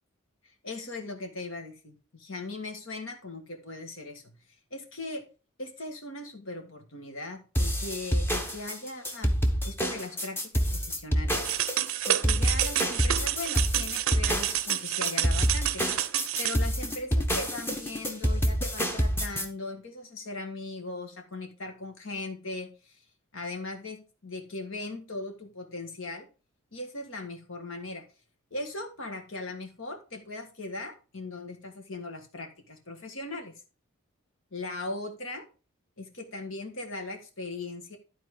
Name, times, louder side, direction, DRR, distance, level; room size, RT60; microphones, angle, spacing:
voice 1, 0.4-4.4 4.7-5.3 5.6-9.3 9.6-11.5 12.0-15.9 16.4-23.0 23.3-26.3 26.7-28.0 28.5-33.6 34.5-35.4 36.0-38.0, left 2 dB, 65° left, 3 dB, 1.7 m, -39 dB
sound 1, 7.5-19.4, equal, 10° left, 0.9 m, -27 dB
sound 2, 11.4-16.6, right 12 dB, 70° right, 0.5 m, -29 dB
12.0 x 4.2 x 4.9 m, 0.34 s
head